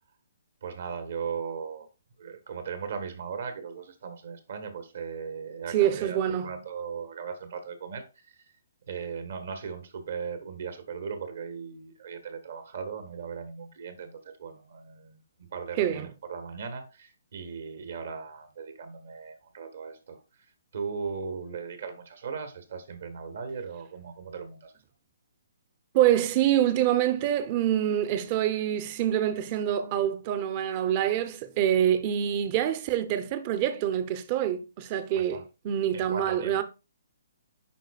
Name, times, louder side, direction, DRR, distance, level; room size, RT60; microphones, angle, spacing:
voice 1, 0.6-1.9 2.2-8.5 8.9-20.2 20.7-24.7 35.1-35.4 35.9-36.6, right 6 dB, 60° right, 1.4 m, -38 dB
voice 2, 5.7-6.6 15.8-16.1 25.9-36.6, right 11 dB, 35° right, 0.8 m, -26 dB
10.0 x 4.0 x 2.4 m
figure-of-eight pair, 135°, 0 cm